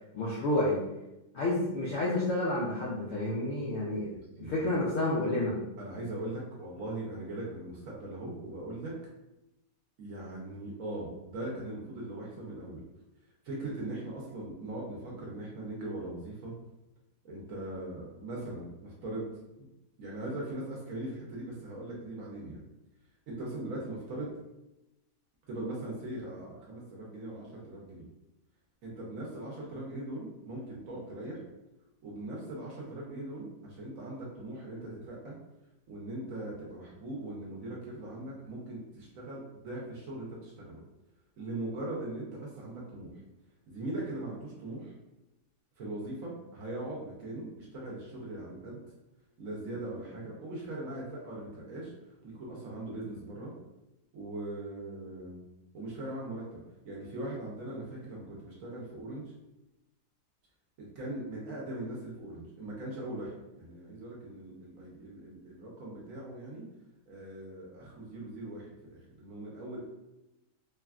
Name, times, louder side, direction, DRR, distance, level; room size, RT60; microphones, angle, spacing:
voice 1, 0.1-0.8 1.3-4.1 4.4-5.5, left 1 dB, 70° left, -5 dB, 0.7 m, -29 dB
voice 2, 4.1-4.8 5.8-9.0 10.0-12.8 13.4-16.5 17.2-19.3 19.6-19.7 20.0-22.6 23.3-24.3 25.5-28.1 28.8-31.4 32.0-35.3 35.9-40.8 41.4-43.1 43.7-44.9 45.8-48.8 49.4-51.9 52.2-53.5 54.1-55.4 55.7-56.6 56.8-59.3 60.8-66.6 67.1-69.9, right 1 dB, 65° right, -4 dB, 1.0 m, -40 dB
3.3 x 2.2 x 2.3 m, 0.94 s
omnidirectional pair, 1.8 m